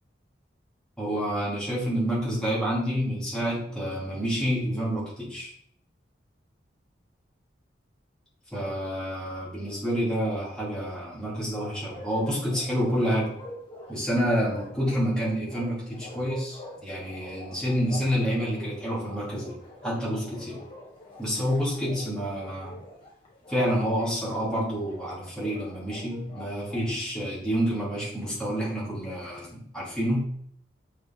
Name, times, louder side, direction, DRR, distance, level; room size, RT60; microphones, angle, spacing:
voice 1, 1.0-5.5 8.5-13.3 13.9-20.6 21.2-22.8 23.5-30.3, equal, 5° left, -7 dB, 2.8 m, -28 dB
Bark, 11.5-26.9, left 2 dB, 30° left, 1.6 m, -46 dB
7.0 x 4.8 x 3.8 m, 0.67 s
head